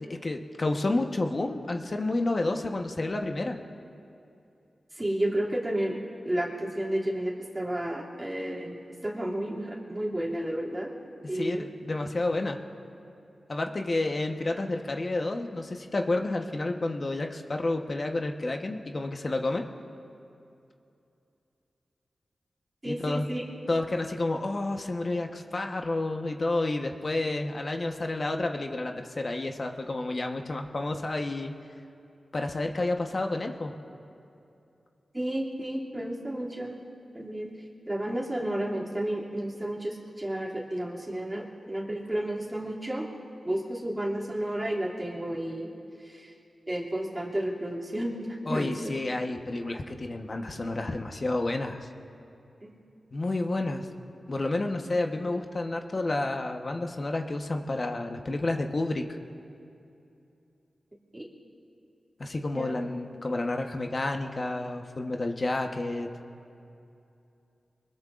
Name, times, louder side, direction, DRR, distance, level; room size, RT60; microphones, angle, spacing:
voice 1, 0.2-3.6 11.3-12.6 13.5-19.6 22.8-23.3 23.7-31.5 32.3-33.7 48.5-51.8 53.1-53.9 54.3-59.0 62.2-66.1, left 2 dB, 45° left, 4 dB, 1.1 m, -30 dB
voice 2, 4.9-6.0 6.2-10.9 11.3-11.6 22.8-23.4 35.1-36.8 37.1-37.5 37.9-43.1 43.4-45.7 46.0-46.3 46.7-48.9 52.6-52.7 61.1-61.3 62.5-62.7, right 1 dB, 20° right, -4 dB, 2.6 m, -32 dB
23.5 x 21.0 x 2.5 m, 2.7 s
wide cardioid pair, 75°, 0 cm